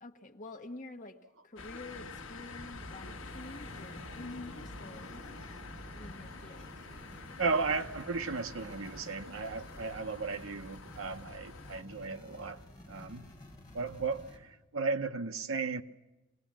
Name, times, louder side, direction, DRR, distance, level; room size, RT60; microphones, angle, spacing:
voice 1, 0.0-1.2 1.4-5.1 6.0-6.7, left 2 dB, 40° left, 1.2 m, -48 dB
sound 1, 1.6-11.8, left 3 dB, 70° left, 1.2 m, -47 dB
sound 2, 1.8-14.4, left 1 dB, 20° left, 5.2 m, -52 dB
sound 3, 2.4-9.9, right 2 dB, 50° right, 1.1 m, -57 dB
voice 2, 7.4-12.6 12.9-13.3 13.7-15.8, right 4 dB, 75° right, 0.9 m, -35 dB
25.5 x 18.5 x 7.5 m
head